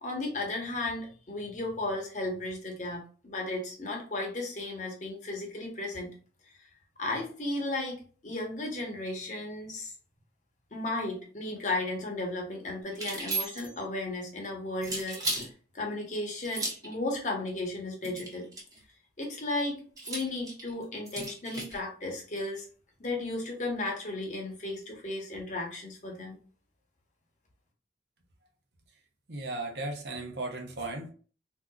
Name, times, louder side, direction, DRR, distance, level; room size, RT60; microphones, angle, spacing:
voice 1, 0.0-6.1 6.5-6.6 7.0-8.0 8.2-9.9 10.7-15.5 15.7-18.5 19.2-22.7 23.0-26.4, left 2 dB, 45° left, 1 dB, 1.0 m, -34 dB
sound 1, 12.9-13.8 14.8-15.5 16.4-16.9 18.0-18.8 20.0-21.8, right 2 dB, 20° right, 1.0 m, -35 dB
voice 2, 29.3-31.1, right 2 dB, 70° right, 3 dB, 0.8 m, -36 dB
3.6 x 2.8 x 2.3 m, 0.39 s
head